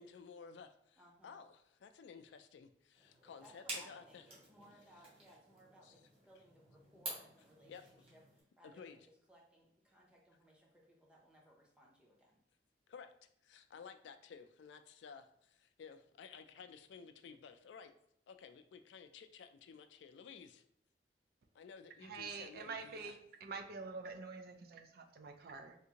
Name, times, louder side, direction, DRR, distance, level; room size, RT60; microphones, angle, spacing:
voice 1, 0.0-4.3 5.8-5.9 7.7-7.8 8.6-9.0 12.9-13.1 13.4-17.9 18.3-20.6 21.5-23.2, left 6 dB, 85° left, 9 dB, 0.3 m, -54 dB
voice 2, 1.0-1.4 3.4-12.4, equal, 5° right, -3 dB, 0.7 m, -64 dB
sound 1, 2.9-8.4, right 1 dB, 35° right, 1.1 m, -50 dB
voice 3, 22.0-25.8, right 4 dB, 60° right, 6 dB, 0.4 m, -47 dB
3.6 x 2.5 x 2.8 m, 0.73 s
head